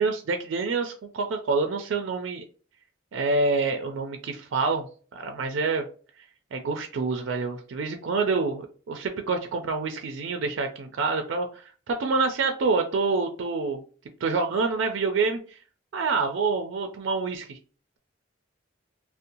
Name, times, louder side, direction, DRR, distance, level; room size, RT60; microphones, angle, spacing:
voice 1, 0.0-2.4 3.1-4.9 5.1-5.8 6.5-13.8 14.2-15.6 15.9-17.6, right 4 dB, 80° right, 4 dB, 0.4 m, -27 dB
2.6 x 2.1 x 2.8 m, 0.39 s
head